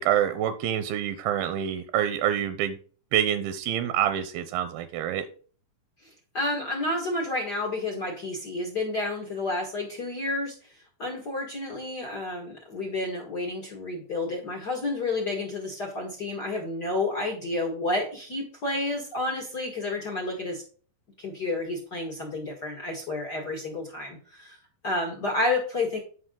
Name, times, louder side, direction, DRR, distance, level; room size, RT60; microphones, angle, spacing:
voice 1, 0.0-2.8 3.1-5.3, right 10 dB, 85° right, 11 dB, 2.5 m, -26 dB
voice 2, 6.3-10.5 11.0-20.6 21.2-24.6 24.8-26.0, left 2 dB, 55° left, 1 dB, 1.1 m, -30 dB
9.9 x 5.9 x 3.8 m, 0.41 s
omnidirectional pair, 4.4 m